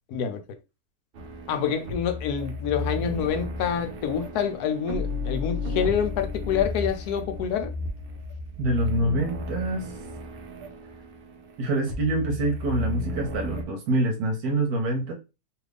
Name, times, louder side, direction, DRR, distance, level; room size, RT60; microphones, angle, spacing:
sound 1, 1.1-13.6, left 2 dB, 55° right, 0.6 m, -34 dB
voice 1, 1.5-7.7, left 8 dB, 80° left, 1.1 m, -27 dB
voice 2, 8.6-9.9 11.6-15.1, right 1 dB, 80° right, 1.2 m, -25 dB
2.9 x 2.4 x 3.3 m
omnidirectional pair, 1.6 m